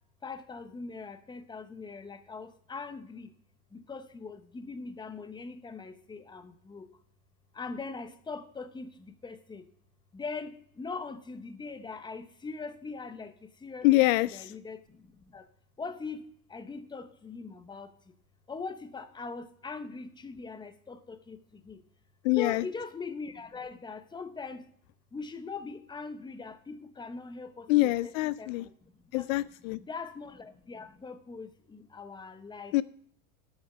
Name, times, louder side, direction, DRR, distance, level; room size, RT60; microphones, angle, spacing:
voice 1, 0.2-3.3 3.7-6.9 7.5-9.7 10.1-13.9 14.3-15.5 15.8-17.9 18.5-21.8 22.3-24.6 25.1-29.3 29.8-32.7, left 4 dB, 10° left, 10 dB, 0.8 m, -41 dB
voice 2, 13.8-14.5 22.2-22.6 27.7-28.7 29.1-29.8 32.7-32.8, left 19 dB, 60° left, 17 dB, 0.5 m, -25 dB
13.0 x 6.6 x 5.6 m, 0.66 s
supercardioid pair, 120°, 45 cm